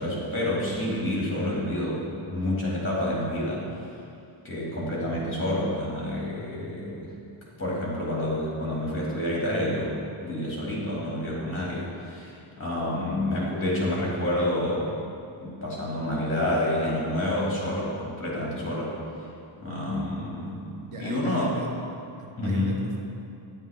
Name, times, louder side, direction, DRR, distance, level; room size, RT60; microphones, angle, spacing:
voice 1, 0.0-3.6 4.4-7.1 7.6-14.9 15.4-18.9 19.6-20.7 21.0-21.5 22.4-22.8, left 1 dB, 25° left, -6 dB, 2.2 m, -28 dB
voice 2, 20.9-21.9 22.2-23.0, right 3 dB, 75° right, 0 dB, 1.2 m, -38 dB
10.5 x 7.4 x 3.5 m, 2.7 s
wide cardioid pair, 170°, 50 cm